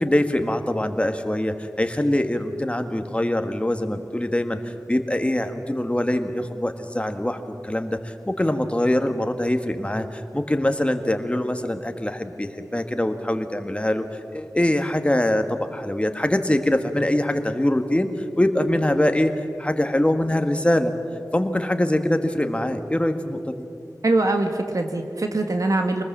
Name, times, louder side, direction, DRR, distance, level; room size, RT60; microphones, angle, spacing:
voice 1, 0.0-18.1 18.4-19.3 19.6-20.9 21.3-23.5, left 1 dB, 20° left, 7 dB, 1.6 m, -23 dB
voice 2, 24.0-26.0, right 2 dB, 60° right, 5 dB, 1.7 m, -22 dB
25.0 x 20.0 x 7.5 m, 2.6 s
wide cardioid pair, 65°, 7 cm